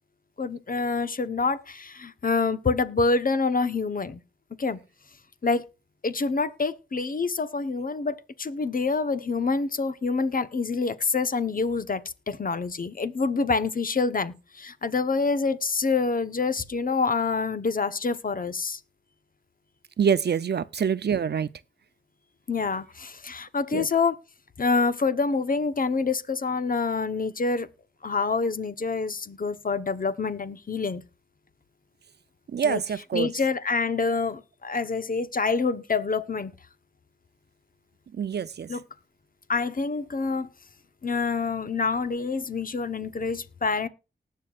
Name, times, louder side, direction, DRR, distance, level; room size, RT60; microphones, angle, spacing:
voice 1, 0.4-4.2 4.6-4.8 5.4-5.6 6.0-18.8 22.5-24.2 24.6-27.7 28.0-31.0 32.6-32.8 33.1-36.5 38.7-38.8 39.5-40.5 41.0-43.9, left 4 dB, 50° left, 1.1 m, -26 dB
voice 2, 20.0-21.5 23.7-23.9 32.5-33.3 38.2-38.7, right 7 dB, 65° right, 0.6 m, -25 dB
19.0 x 6.7 x 2.5 m
cardioid pair, 55°, 18 cm